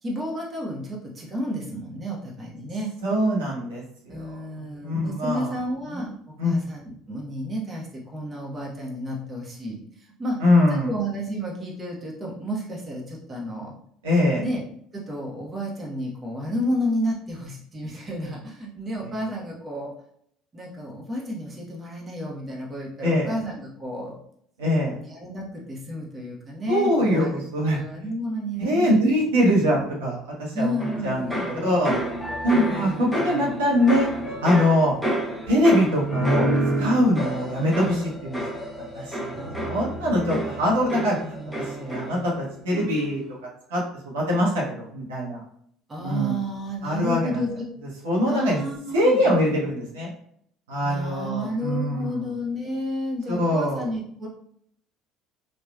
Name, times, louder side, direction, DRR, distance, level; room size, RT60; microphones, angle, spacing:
voice 1, 0.0-2.9 4.1-6.1 6.4-10.4 10.7-13.7 14.4-14.6 14.9-19.9 20.5-24.2 24.9-27.4 27.7-29.0 29.4-29.6 30.5-31.6 32.5-33.5 40.9-42.5 45.9-47.6 48.3-49.6 50.8-54.3, equal, 30° right, -2 dB, 0.9 m, -31 dB
voice 2, 3.0-5.6 5.9-6.1 6.4-6.5 10.4-10.9 14.0-14.4 19.0-19.1 23.0-23.4 24.6-24.9 26.7-27.8 28.6-31.9 32.4-34.1 34.4-34.9 35.5-36.5 36.8-38.4 38.8-43.2 43.7-45.4 46.0-46.4 46.8-47.4 48.0-48.6 48.9-50.1 50.7-52.3 53.3-53.9, equal, 85° right, -5 dB, 0.9 m, -23 dB
sound 1, 30.8-42.4 42.7-43.2, right 1 dB, 5° left, 0.8 m, -29 dB
3.0 x 2.3 x 2.3 m, 0.67 s
hypercardioid pair, 70°, 0 cm